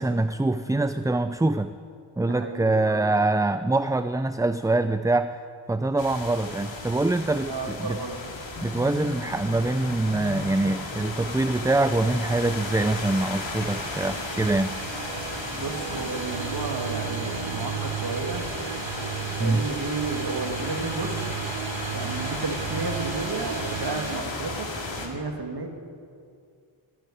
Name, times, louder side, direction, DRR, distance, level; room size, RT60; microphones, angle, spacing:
voice 1, 0.0-1.8 2.2-5.4 5.7-8.0 8.6-14.8 19.4-19.7, right 2 dB, 5° right, 11 dB, 0.4 m, -24 dB
voice 2, 2.3-3.1 7.4-8.2 15.5-18.5 19.4-21.2 21.9-24.7 25.0-25.7, right 3 dB, 50° right, 3 dB, 2.3 m, -32 dB
sound 1, 6.0-25.1, left 3 dB, 65° left, 2.6 m, -35 dB
sound 2, 8.5-14.8, left 5 dB, 45° left, 1.1 m, -44 dB
sound 3, 12.2-24.2, right 10 dB, 65° right, 0.8 m, -35 dB
15.5 x 9.3 x 9.4 m, 2.3 s
cardioid pair, 45°, 50 cm